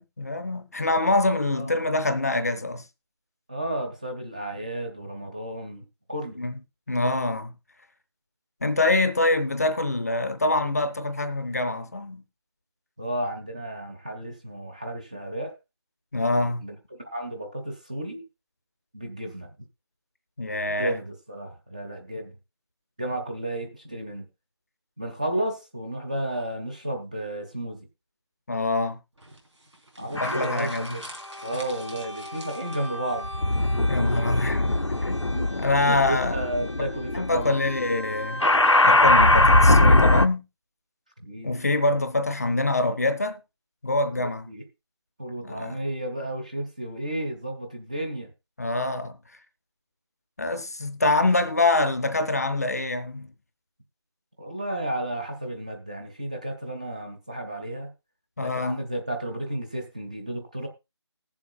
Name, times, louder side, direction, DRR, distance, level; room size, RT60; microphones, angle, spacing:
voice 1, 0.0-2.8 6.4-6.6 6.9-7.5 8.6-12.2 16.1-16.6 20.4-21.0 28.5-29.0 30.2-31.0 33.9-36.7 37.1-38.5 38.8-40.4 41.4-43.4 43.8-44.5 45.4-45.8 48.6-49.2 50.4-53.3 58.4-58.8, left 2 dB, 35° left, 0.6 m, -25 dB
voice 2, 3.5-6.4 13.0-15.6 16.6-18.2 18.9-19.5 20.8-22.3 23.0-24.3 25.0-27.8 30.0-31.0 31.4-33.3 35.3-35.5 35.8-37.6 41.2-41.5 44.1-44.6 45.2-48.3 54.4-57.9 58.4-60.7, right 1 dB, 15° right, 0.5 m, -32 dB
sound 1, 29.2-33.1, right 1 dB, 80° right, 3.3 m, -47 dB
sound 2, 30.2-30.9 31.7-40.3, left 2 dB, 85° left, 0.7 m, -22 dB
19.5 x 7.1 x 2.2 m
figure-of-eight pair, 165°, 15 cm